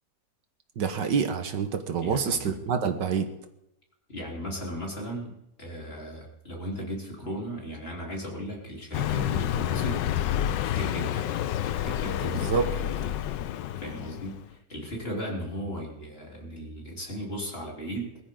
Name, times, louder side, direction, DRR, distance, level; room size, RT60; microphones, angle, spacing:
voice 1, 0.8-3.3 12.5-12.7, right 6 dB, 75° right, 7 dB, 1.9 m, -27 dB
voice 2, 2.0-2.6 4.1-10.0 10.7-11.4 11.8-13.1 13.8-18.2, equal, 30° left, -2 dB, 4.0 m, -36 dB
Car passing by, 8.9-14.4, left 11 dB, 80° left, 1.3 m, -29 dB
21.5 x 14.0 x 3.9 m, 0.85 s
omnidirectional pair, 2.0 m